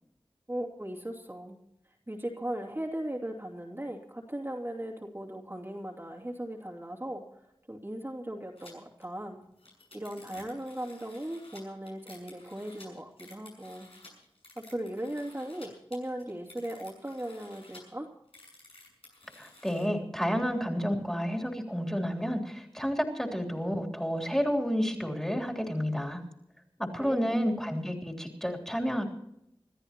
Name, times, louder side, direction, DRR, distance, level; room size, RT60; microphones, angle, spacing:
voice 1, 0.5-1.6 2.1-7.2 7.7-9.4 9.9-13.9 14.6-18.1 27.0-27.4, right 1 dB, 25° right, -2 dB, 2.7 m, -38 dB
sound 1, 8.6-8.7 9.0-9.1 9.4-15.7 15.9-17.8 18.3-19.9, left 2 dB, 85° left, 6.9 m, -53 dB
voice 2, 19.4-26.2 26.8-29.1, equal, 5° left, 0 dB, 3.3 m, -30 dB
26.5 x 13.5 x 2.9 m, 0.80 s
wide cardioid pair, 60°, 9 cm